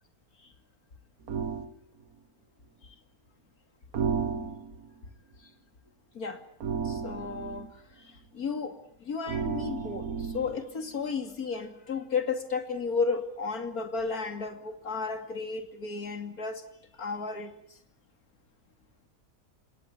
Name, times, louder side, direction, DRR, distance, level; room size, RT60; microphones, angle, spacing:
sound 1, 1.3-1.7 3.9-4.9 6.6-7.7 9.3-10.6, right 6 dB, 75° right, 1.7 m, -32 dB
voice 1, 6.8-16.6 16.9-17.5, left 4 dB, 85° left, 7 dB, 3.0 m, -33 dB
29.0 x 18.5 x 8.4 m, 0.65 s
omnidirectional pair, 1.5 m